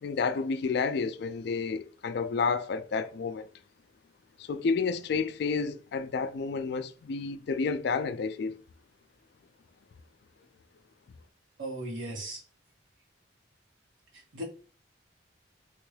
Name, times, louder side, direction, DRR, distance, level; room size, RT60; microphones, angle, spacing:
voice 1, 0.0-3.5 4.4-8.6, left 5 dB, 60° left, 0.3 m, -30 dB
voice 2, 11.6-12.4 14.1-14.4, right 1 dB, 85° right, 1.3 m, -37 dB
3.5 x 2.3 x 3.2 m
head